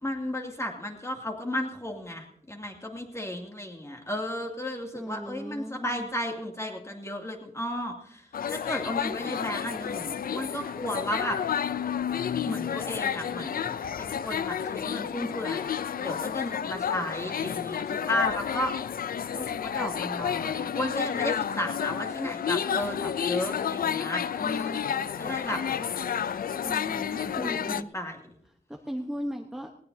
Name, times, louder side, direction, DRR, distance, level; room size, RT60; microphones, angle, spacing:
voice 1, 0.0-11.4 12.4-15.7 16.0-18.7 19.3-25.6 27.2-28.2, left 1 dB, 20° left, 2 dB, 2.4 m, -34 dB
voice 2, 4.9-6.1 24.9-25.9 26.6-27.9 28.7-29.7, equal, ahead, 3 dB, 0.9 m, -38 dB
sound 1, 8.3-27.8, left 8 dB, 75° left, 0.5 m, -31 dB
19.5 x 18.0 x 2.7 m, 0.76 s
wide cardioid pair, 110°, 15 cm